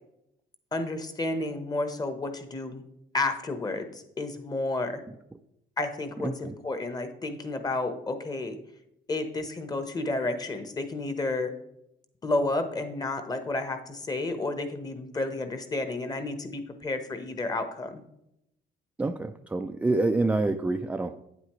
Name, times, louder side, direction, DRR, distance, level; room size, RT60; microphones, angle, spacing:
voice 1, 0.7-2.8 3.1-5.0 5.8-8.6 9.1-11.5 12.2-18.0, left 2 dB, 25° left, 8 dB, 1.0 m, -31 dB
voice 2, 6.2-6.5 19.0-21.2, right 2 dB, 10° right, 6 dB, 0.3 m, -27 dB
9.2 x 8.1 x 3.1 m, 0.81 s
cardioid pair, 110°, 17 cm